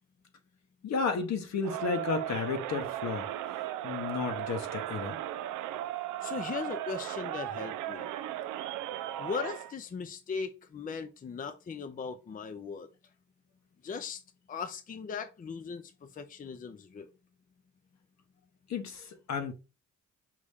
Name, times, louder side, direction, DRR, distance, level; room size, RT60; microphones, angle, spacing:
voice 1, 0.8-3.3 3.8-5.2 18.7-19.5, left 5 dB, 60° left, 1.0 m, -33 dB
Crowd, 1.6-9.7, right 12 dB, 85° right, 0.5 m, -36 dB
voice 2, 6.2-8.1 9.2-12.9 13.8-14.2 14.5-17.1, left 5 dB, 30° left, 0.5 m, -38 dB
4.9 x 2.7 x 3.5 m
cardioid pair, 90°, 30 cm